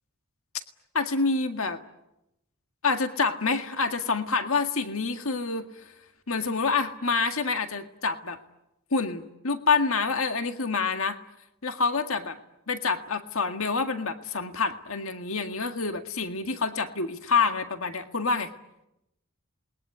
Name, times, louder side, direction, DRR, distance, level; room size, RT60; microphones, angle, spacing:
voice 1, 0.9-1.8 2.8-5.7 6.3-8.4 8.9-11.2 11.6-12.4 12.7-18.5, left 4 dB, 65° left, 7 dB, 1.8 m, -27 dB
28.0 x 21.5 x 9.5 m, 0.88 s
head